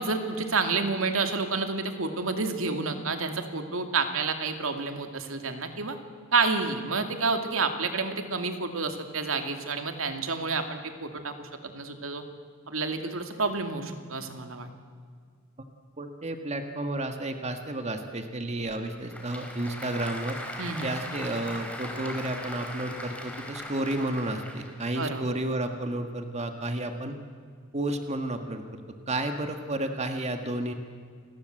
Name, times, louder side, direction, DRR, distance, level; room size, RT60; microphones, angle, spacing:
voice 1, 0.0-6.0 6.3-12.2 12.7-14.7 20.6-20.9 25.0-25.2, right 4 dB, 75° right, 6 dB, 2.5 m, -29 dB
voice 2, 16.0-20.4 20.8-27.1 27.7-28.8 29.1-30.7, right 1 dB, 35° right, 6 dB, 1.7 m, -31 dB
Applause / Crowd, 18.7-24.8, left 1 dB, 5° left, 3.8 m, -39 dB
29.5 x 20.5 x 7.8 m, 2.1 s
head